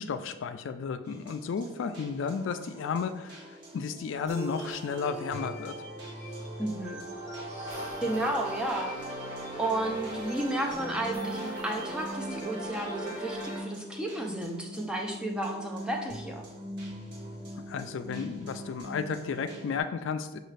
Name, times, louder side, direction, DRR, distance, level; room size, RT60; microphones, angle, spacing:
voice 1, 0.0-5.8 17.7-20.4, left 5 dB, 65° left, 10 dB, 0.3 m, -33 dB
sound 1, 1.1-19.8, equal, 55° right, 1.0 m, -44 dB
sound 2, 4.1-13.6, right 1 dB, 35° right, 1.3 m, -39 dB
voice 2, 6.6-7.0 8.0-8.9 9.6-16.4, right 1 dB, 5° right, 1 dB, 0.4 m, -32 dB
6.3 x 2.4 x 3.2 m, 1.1 s
head